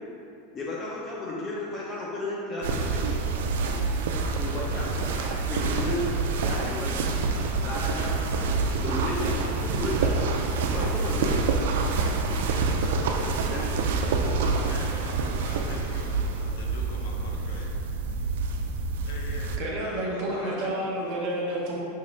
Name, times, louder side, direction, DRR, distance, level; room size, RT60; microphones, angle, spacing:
voice 1, 0.5-3.0 3.6-3.8 4.4-7.1 7.6-8.3 8.8-10.3 10.6-11.4 12.2-12.4 13.5-13.8, left 2 dB, 15° left, -5 dB, 0.4 m, -34 dB
sound 1, 2.6-19.6, right 4 dB, 85° right, 0.3 m, -27 dB
voice 2, 14.7-17.7 19.1-20.9, left 2 dB, 65° left, -1 dB, 0.6 m, -42 dB
voice 3, 19.6-21.8, right 1 dB, 40° right, -4 dB, 0.7 m, -30 dB
5.4 x 2.5 x 3.0 m, 2.7 s
supercardioid pair, 175°, 0 cm